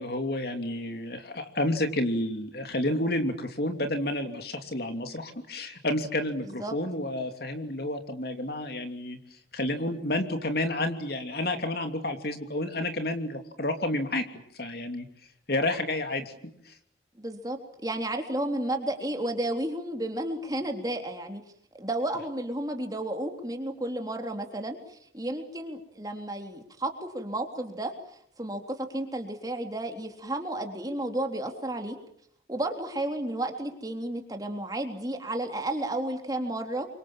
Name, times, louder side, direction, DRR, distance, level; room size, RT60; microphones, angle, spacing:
voice 1, 0.0-9.2 9.5-14.3 14.5-15.1 15.5-16.3 16.7-16.8, left 1 dB, 60° left, 6 dB, 3.0 m, -30 dB
voice 2, 6.4-6.7 17.2-17.6 17.8-21.4 21.7-27.9 28.4-32.0 32.5-36.9, right 1 dB, 20° right, 4 dB, 3.5 m, -32 dB
28.5 x 25.0 x 7.5 m, 0.67 s
head